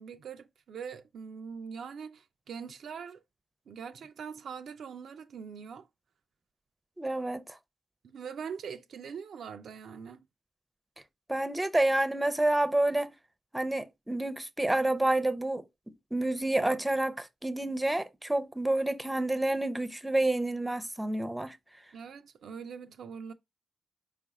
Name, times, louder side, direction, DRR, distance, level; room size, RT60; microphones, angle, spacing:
voice 1, 0.0-3.2 3.7-5.9 8.0-10.2 21.9-23.3, right 6 dB, 70° right, 0.3 m, -42 dB
voice 2, 7.0-7.6 11.3-13.1 13.5-15.6 16.1-21.6, right 1 dB, 15° right, 0.5 m, -29 dB
4.5 x 2.4 x 4.0 m
hypercardioid pair, 40°, 0 cm